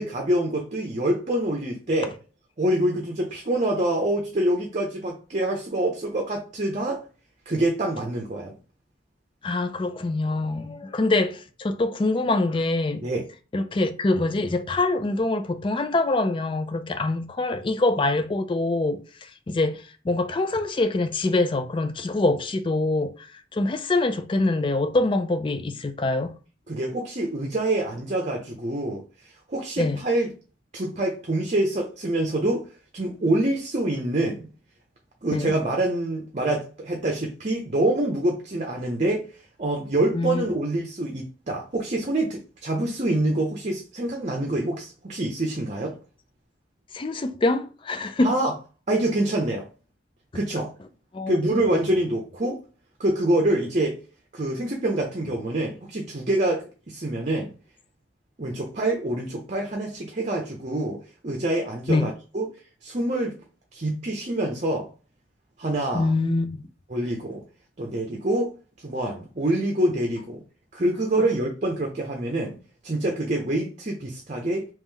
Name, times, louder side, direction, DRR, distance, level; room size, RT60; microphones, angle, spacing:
voice 1, 0.0-2.1 2.6-7.0 7.5-8.5 13.0-13.2 26.7-30.3 30.7-32.6 32.9-34.5 35.2-39.2 39.6-46.0 48.2-48.5 48.9-49.7 50.3-50.7 51.3-52.6 53.0-54.0 54.3-57.5 58.4-62.5 62.8-63.4 63.7-64.9 65.6-66.1 66.9-67.4 67.8-68.5 68.8-70.4 70.7-72.6 72.8-74.7, right 1 dB, 40° right, 0.7 m, -26 dB
voice 2, 9.4-13.0 13.5-26.3 29.8-30.0 35.3-35.5 40.1-40.4 46.9-48.3 51.1-51.4 51.7-51.8 61.9-62.1 65.9-66.6, left 2 dB, 25° left, 0.4 m, -24 dB
3.0 x 3.0 x 3.7 m
head